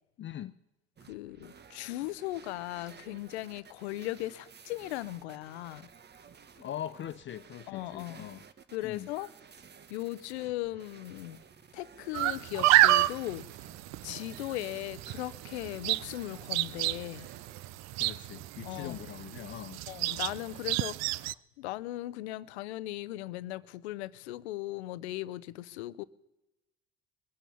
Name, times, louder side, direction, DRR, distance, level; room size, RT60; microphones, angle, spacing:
voice 1, 0.2-0.6 6.6-8.4 8.8-9.1 18.0-19.8, left 11 dB, 35° left, 0.5 m, -41 dB
sound 1, 1.0-17.7, right 6 dB, 30° right, 1.1 m, -54 dB
voice 2, 1.1-5.9 7.7-8.3 8.7-9.3 9.9-11.4 11.7-13.5 14.0-17.3 18.6-19.0 19.9-21.2 21.6-26.0, left 16 dB, 90° left, 0.7 m, -38 dB
sound 2, 12.1-21.3, right 17 dB, 55° right, 0.5 m, -29 dB
21.0 x 8.6 x 6.9 m
supercardioid pair, 80°, 32 cm